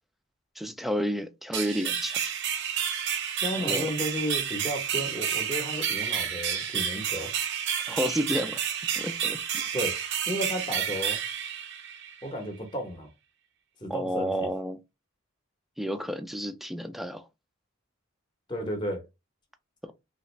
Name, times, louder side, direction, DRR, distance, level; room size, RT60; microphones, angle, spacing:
voice 1, 0.6-2.2 3.6-3.9 7.9-8.6 9.0-9.6 13.9-14.8 15.8-17.3 19.8-19.9, equal, ahead, 0.3 m, -31 dB
sound 1, 1.5-12.2, right 8 dB, 60° right, 0.6 m, -30 dB
voice 2, 3.3-7.3 9.7-10.0 10.3-11.2 12.2-13.1 13.8-14.5 18.5-19.1, equal, 25° left, 0.8 m, -33 dB
3.2 x 2.5 x 3.0 m
head